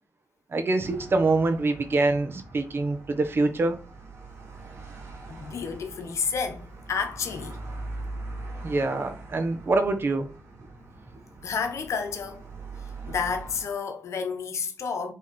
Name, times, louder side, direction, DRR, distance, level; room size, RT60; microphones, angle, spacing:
voice 1, 0.5-3.8 8.6-10.3, right 3 dB, 50° right, 1.3 m, -25 dB
sound 1, 0.8-13.6, right 2 dB, 85° right, 2.5 m, -42 dB
voice 2, 5.3-7.6 11.4-12.4 12.8-15.1, left 5 dB, 80° left, 1.1 m, -31 dB
7.7 x 3.6 x 4.4 m
wide cardioid pair, 100°, 5 cm